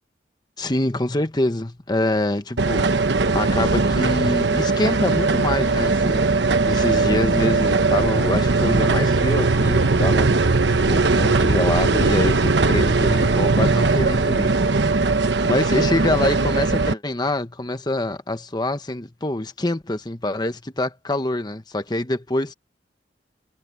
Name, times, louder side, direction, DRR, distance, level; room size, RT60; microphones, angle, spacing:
voice 1, 0.6-2.9 3.3-6.3 6.6-10.6 10.8-14.8 15.4-22.5, left 1 dB, 25° left, 1.2 m, -25 dB
sound 1, 2.6-16.9, right 3 dB, 85° right, 1.1 m, -19 dB
head